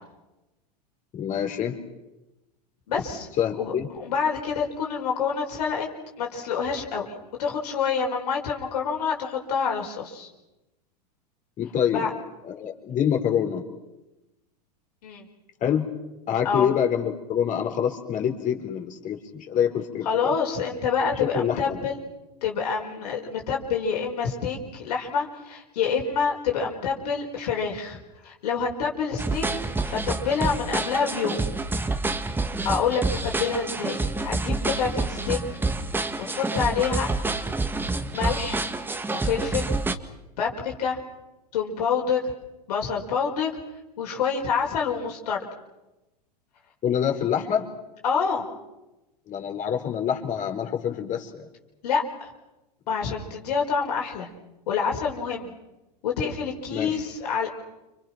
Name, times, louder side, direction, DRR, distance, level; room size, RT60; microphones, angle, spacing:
voice 1, 1.1-1.8 3.4-3.9 11.6-12.1 12.4-13.6 15.6-15.9 16.3-20.3 21.2-21.8 46.8-47.7 49.3-51.5 56.7-57.0, left 8 dB, 35° left, 3 dB, 5.0 m, -26 dB
voice 2, 2.9-3.3 3.6-5.9 6.2-7.1 7.4-10.3 11.9-12.1 15.0-15.3 16.4-16.7 20.1-22.0 22.4-28.0 28.2-29.5 29.8-31.4 32.6-35.4 36.2-37.1 38.1-38.6 39.1-39.7 40.4-41.0 41.5-42.3 42.7-43.5 44.0-45.5 48.0-48.5 51.8-52.3 52.9-54.3 54.7-55.5 56.0-57.5, left 6 dB, 70° left, 0 dB, 5.4 m, -27 dB
sound 1, 29.2-39.9, right 3 dB, 10° right, 1.9 m, -28 dB
30.0 x 27.5 x 6.1 m, 1.0 s
hypercardioid pair, 95°, 21 cm